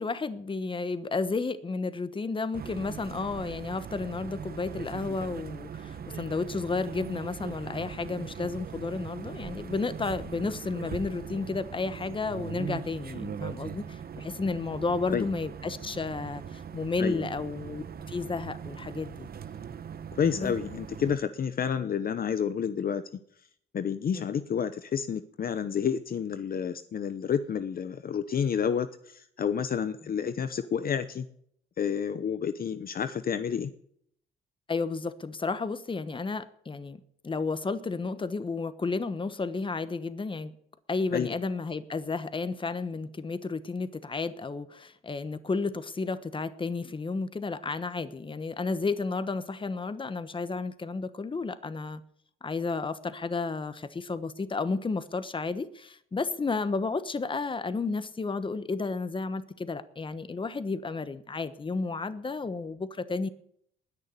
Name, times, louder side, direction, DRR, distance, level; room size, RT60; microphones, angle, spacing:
voice 1, 0.0-19.3 20.4-20.5 24.2-24.3 34.7-40.5 40.9-52.0 52.4-63.3, left 4 dB, 25° left, 12 dB, 1.2 m, -32 dB
sound 1, 2.5-21.2, right 7 dB, 50° right, 1.1 m, -40 dB
voice 2, 20.1-23.0 23.7-31.3 31.8-33.7 41.1-41.3, left 7 dB, 45° left, 11 dB, 0.9 m, -30 dB
19.5 x 6.7 x 9.7 m, 0.69 s
cardioid pair, 90°, 20 cm